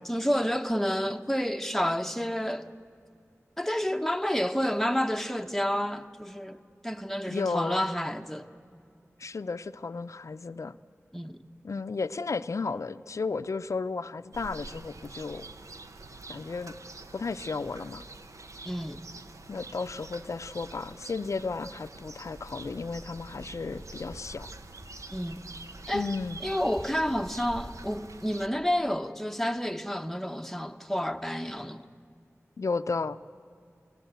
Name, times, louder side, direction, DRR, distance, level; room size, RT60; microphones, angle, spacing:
voice 1, 0.1-2.7 3.6-8.5 11.1-11.4 18.7-19.0 25.1-25.4 25.9-26.1 26.4-31.8, equal, 5° left, 0.9 m, -30 dB
voice 2, 7.3-7.9 9.2-10.8 11.6-15.4 16.3-16.8 17.1-18.0 19.5-24.5 25.9-26.4 32.6-33.2, left 4 dB, 75° left, 0.6 m, -33 dB
sound 1, 14.3-28.5, right 3 dB, 85° right, 1.0 m, -46 dB
sound 2, 22.3-27.8, equal, 30° right, 5.4 m, -49 dB
28.0 x 18.5 x 8.2 m
wide cardioid pair, 75°, 5 cm